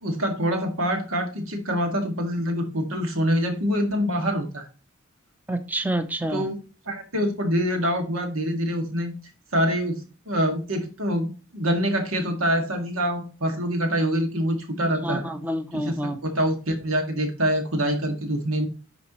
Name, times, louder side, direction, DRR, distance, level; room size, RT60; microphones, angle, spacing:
voice 1, 0.0-4.7 6.3-6.6 6.9-9.1 9.5-15.2 15.7-18.7, equal, 90° right, 4 dB, 2.1 m, -25 dB
voice 2, 5.5-6.5 15.0-16.2, right 1 dB, 10° right, 8 dB, 0.6 m, -28 dB
10.0 x 5.0 x 3.1 m, 0.34 s
head